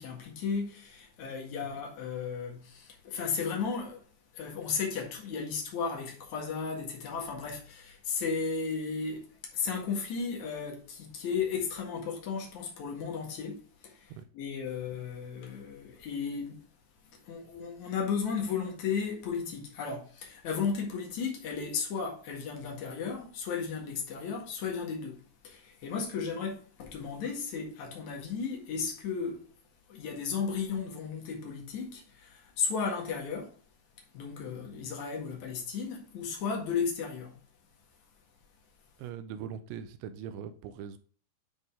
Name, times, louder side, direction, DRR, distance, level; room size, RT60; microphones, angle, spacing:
voice 1, 0.0-4.0 4.3-16.6 17.3-29.5 29.9-33.5 34.1-37.4, left 5 dB, 55° left, 2.5 m, -34 dB
voice 2, 39.0-41.0, right 8 dB, 85° right, 2.9 m, -41 dB
10.5 x 4.0 x 3.6 m
omnidirectional pair, 5.1 m